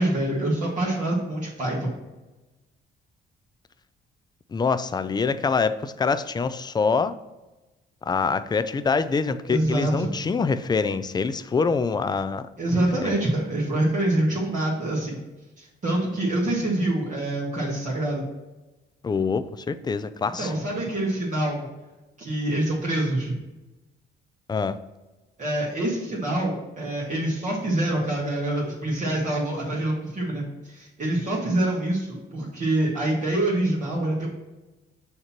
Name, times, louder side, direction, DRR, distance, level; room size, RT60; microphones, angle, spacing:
voice 1, 0.0-1.9 9.5-10.1 12.6-15.2 15.6-18.3 20.4-21.7 22.2-23.4 25.4-34.3, right 1 dB, 40° right, -6 dB, 1.7 m, -25 dB
voice 2, 4.5-7.2 8.0-12.4 13.0-13.2 19.0-20.5 24.5-24.8, left 5 dB, 20° left, 13 dB, 0.4 m, -25 dB
6.4 x 2.9 x 5.8 m, 1.1 s
cardioid pair, 90°, 20 cm